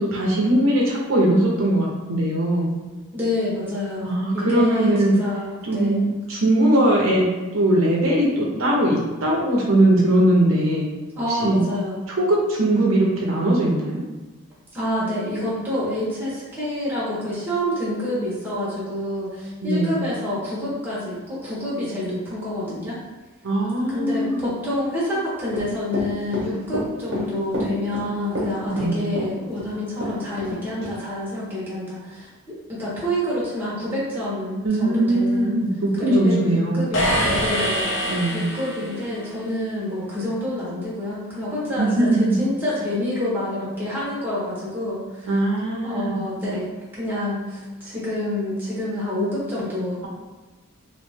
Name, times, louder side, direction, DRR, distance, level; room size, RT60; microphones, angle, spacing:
voice 1, 0.0-2.7 4.0-5.1 5.6-7.3 7.5-10.9 11.3-11.6 12.2-14.0 19.6-20.0 23.4-24.4 28.7-29.1 34.6-36.9 38.1-38.4 41.8-42.4 45.3-46.2, right 1 dB, 75° right, -2 dB, 0.7 m, -20 dB
voice 2, 3.1-6.1 11.2-12.0 14.7-23.0 23.9-35.6 35.9-45.3 45.8-46.7 46.9-50.1, left 1 dB, 10° right, -9 dB, 1.1 m, -28 dB
Run / Walk footsteps, 25.5-30.5 30.8-30.9, equal, 50° right, 1.1 m, -29 dB
sound 1, 36.9-39.2, equal, 65° left, 0.8 m, -24 dB
3.1 x 2.5 x 3.4 m, 1.2 s
head